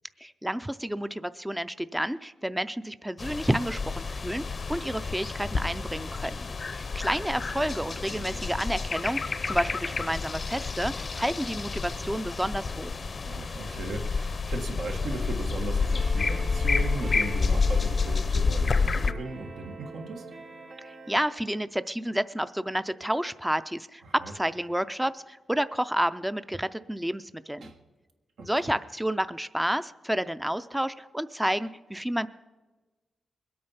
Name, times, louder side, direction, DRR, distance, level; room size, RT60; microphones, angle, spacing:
voice 1, 0.2-4.4 4.7-12.9 20.8-27.7 28.4-32.3, equal, 5° right, 13 dB, 0.4 m, -30 dB
sound 1, 3.2-19.1, left 4 dB, 40° left, 0.6 m, -29 dB
voice 2, 8.1-8.5 13.3-20.3 24.0-24.3 27.6-27.8 28.4-28.7, right 3 dB, 90° right, 3 dB, 1.5 m, -37 dB
sound 2, 15.0-21.2, right 3 dB, 70° right, 2.1 m, -45 dB
21.5 x 8.6 x 5.6 m, 1.2 s
wide cardioid pair, 105°, 0 cm